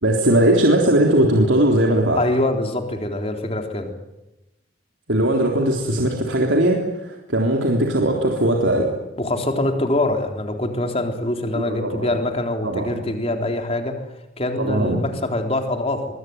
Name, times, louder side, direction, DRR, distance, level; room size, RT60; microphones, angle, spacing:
voice 1, 0.0-2.2 5.1-8.9 11.5-12.1 12.6-13.0 14.6-15.0, right 1 dB, 80° right, 0 dB, 3.7 m, -19 dB
voice 2, 2.1-3.9 9.2-14.0 14.4-16.1, left 1 dB, 30° left, 4 dB, 3.8 m, -24 dB
24.5 x 23.0 x 9.5 m, 0.98 s
head